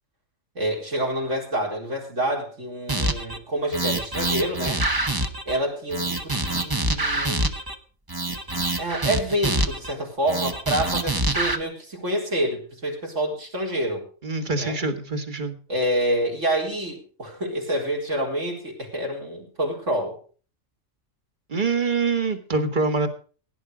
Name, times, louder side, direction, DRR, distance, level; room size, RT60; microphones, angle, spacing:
voice 1, 0.5-4.8 5.5-7.4 8.8-14.0 14.6-14.8 15.7-20.2, right 1 dB, 65° right, -1 dB, 4.5 m, -27 dB
sound 1, 2.9-3.4 3.7-5.6 5.9-7.7 8.1-9.9 10.3-11.6, right 2 dB, 20° right, 0.9 m, -25 dB
voice 2, 14.2-15.6 21.5-23.1, right 4 dB, 35° right, 7 dB, 1.8 m, -25 dB
17.0 x 10.5 x 5.0 m, 0.40 s
omnidirectional pair, 1.4 m